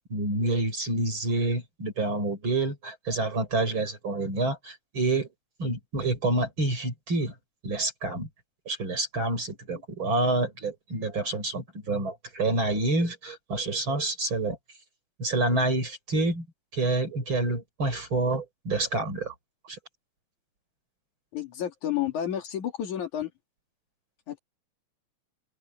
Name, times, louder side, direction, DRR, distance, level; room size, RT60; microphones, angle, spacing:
voice 1, 0.0-5.3 5.6-7.3 7.6-8.3 8.7-14.6 15.2-16.5 16.7-19.3 19.6-19.8, right 2 dB, 40° right, 6.6 m, -28 dB
voice 2, 21.3-23.3 24.3-24.4, left 10 dB, 85° left, 3.9 m, -31 dB
open air
omnidirectional pair, 3.3 m